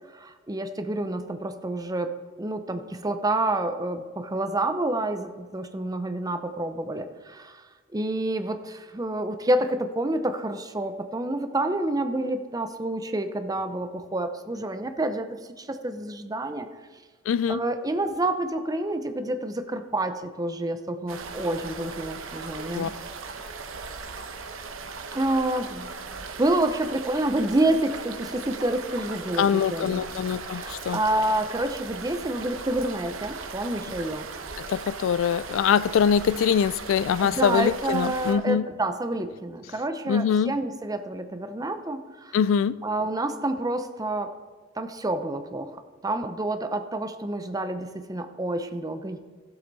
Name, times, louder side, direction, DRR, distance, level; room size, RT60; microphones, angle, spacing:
voice 1, 0.1-7.6 7.9-16.7 17.5-22.9 25.1-30.0 30.4-34.3 37.2-42.4 42.8-44.3 44.8-45.8 46.0-49.2, right 1 dB, 20° right, 0.6 m, -28 dB
voice 2, 17.3-17.6 22.7-22.9 29.4-31.0 34.7-38.6 40.1-40.5 42.3-42.8, left 7 dB, 70° left, 0.3 m, -23 dB
sound 1, 21.1-38.3, right 4 dB, 85° right, 1.0 m, -38 dB
15.0 x 8.0 x 4.1 m
head